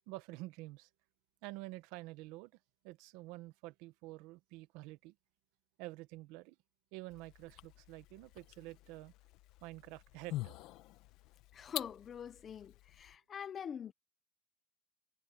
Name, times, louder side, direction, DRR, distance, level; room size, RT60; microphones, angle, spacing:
voice 1, 0.1-0.9 1.4-2.5 2.8-5.1 5.8-6.6 6.9-9.1 9.6-10.6, right 20 dB, 85° right, 1.0 m, -48 dB
sound 1, 7.1-13.2, left 16 dB, 70° left, 1.1 m, -47 dB
voice 2, 11.5-13.9, left 8 dB, 30° left, 1.0 m, -44 dB
cardioid pair, 145°, 0 cm